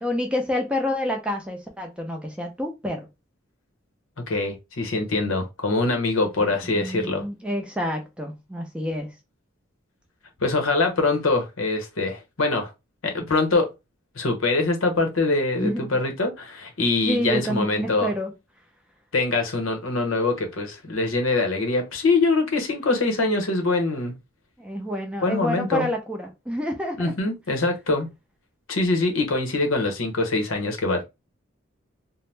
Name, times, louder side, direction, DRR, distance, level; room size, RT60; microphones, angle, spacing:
voice 1, 0.0-3.1 6.4-9.1 15.5-16.0 17.1-18.3 24.6-27.1, left 1 dB, 5° right, 0.5 m, -28 dB
voice 2, 4.3-7.2 10.4-12.7 13.0-13.7 14.2-18.1 19.1-24.2 25.2-25.9 27.0-28.1 28.7-31.0, left 3 dB, 85° left, 0.8 m, -23 dB
2.6 x 2.1 x 3.2 m
head